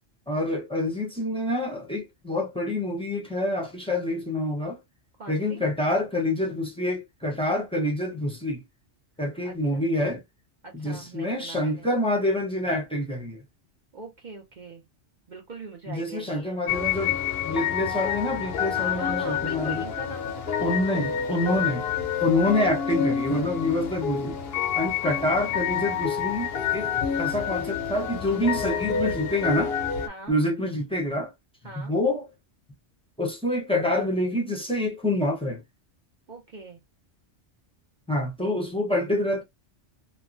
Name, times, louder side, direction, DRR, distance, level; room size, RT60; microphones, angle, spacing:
voice 1, 0.3-4.8 5.3-8.6 9.2-10.2 10.7-13.4 15.9-17.2 17.4-19.8 20.6-21.9 22.2-24.4 24.7-29.8 30.3-31.3 31.7-32.2 33.2-35.6 38.1-39.4, left 1 dB, 5° left, 0.7 m, -27 dB
voice 2, 5.2-5.6 9.4-9.8 10.6-11.9 13.9-14.8 15.3-16.6 18.7-20.8 30.1-30.4 31.6-31.9 36.3-36.8, right 4 dB, 50° right, 0.7 m, -42 dB
sound 1, 16.7-30.1, left 8 dB, 65° left, 0.8 m, -28 dB
3.0 x 2.2 x 2.5 m
omnidirectional pair, 1.2 m